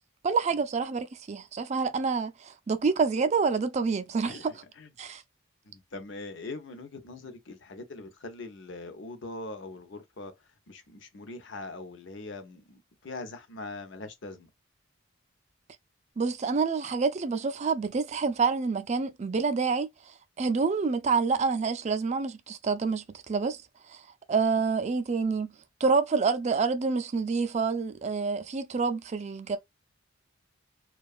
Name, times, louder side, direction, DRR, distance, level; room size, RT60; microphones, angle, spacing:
voice 1, 0.2-4.4 5.0-5.2 16.2-19.9 20.4-23.6 23.9-24.0 24.3-25.5 25.8-29.6, right 4 dB, 35° right, 0.4 m, -27 dB
voice 2, 4.2-4.9 5.6-14.5 24.5-24.6, left 2 dB, 60° left, 0.6 m, -42 dB
2.7 x 2.3 x 2.3 m
head